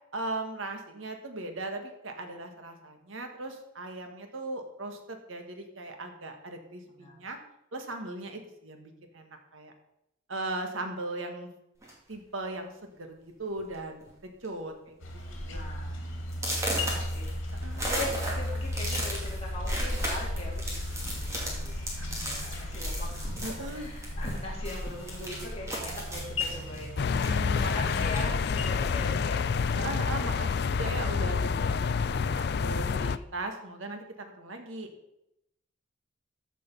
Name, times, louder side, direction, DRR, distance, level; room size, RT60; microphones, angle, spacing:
voice 1, 0.1-7.4 7.7-9.7 10.3-11.5 12.1-14.1 14.4-15.0 15.3-15.6 17.6-18.0 22.0-22.2 23.4-23.9 27.1-27.8 29.7-34.9, right 2 dB, 80° right, 4 dB, 1.6 m, -38 dB
sound 1, 11.8-12.1 12.9-13.0 13.4-13.7 14.0-14.5 14.9-15.0 15.5-15.6 16.3-24.4 24.6-28.4 28.7-29.8, right 1 dB, 15° right, 2.5 m, -37 dB
sound 2, 15.0-28.7, left 1 dB, 70° left, 2.4 m, -35 dB
voice 2, 15.5-16.0 16.6-17.3 17.8-26.9 27.6-29.4, left 1 dB, 30° left, -4 dB, 3.3 m, -40 dB
sound 3, 27.0-33.2, left 5 dB, 50° left, 0.4 m, -28 dB
14.0 x 5.3 x 5.5 m, 0.83 s
head